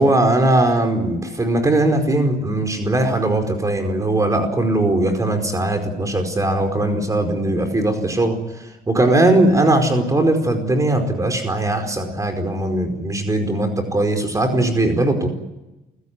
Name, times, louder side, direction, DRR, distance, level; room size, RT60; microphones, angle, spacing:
voice 1, 0.0-15.3, right 1 dB, 20° right, 5 dB, 4.8 m, -19 dB
29.0 x 16.5 x 9.8 m, 1.0 s
cardioid pair, 110°, 17 cm